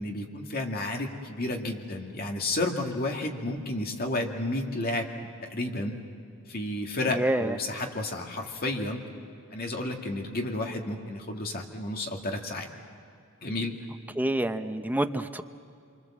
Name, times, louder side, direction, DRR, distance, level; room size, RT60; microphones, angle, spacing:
voice 1, 0.0-5.1 5.4-6.0 6.5-9.0 9.5-12.7 13.4-13.8, left 2 dB, 45° left, 2 dB, 2.3 m, -31 dB
voice 2, 7.1-7.6 14.2-15.4, right 1 dB, 10° right, 8 dB, 0.7 m, -27 dB
27.0 x 25.0 x 7.4 m, 2.5 s
head